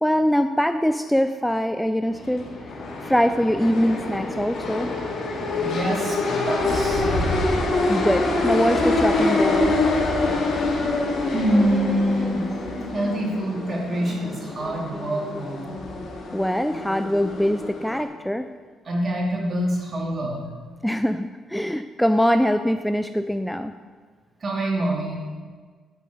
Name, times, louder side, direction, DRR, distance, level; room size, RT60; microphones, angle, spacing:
voice 1, 0.0-2.7 3.0-4.9 7.9-9.9 16.3-18.5 20.8-23.7, equal, 5° left, 9 dB, 0.4 m, -23 dB
sound 1, 2.1-18.0, left 2 dB, 65° left, 2.3 m, -25 dB
voice 2, 5.2-7.1 11.3-12.5 12.9-15.7 18.8-20.4 24.4-25.2, right 1 dB, 40° right, -2 dB, 3.1 m, -25 dB
11.5 x 5.3 x 7.9 m, 1.5 s
cardioid pair, 90°, 0 cm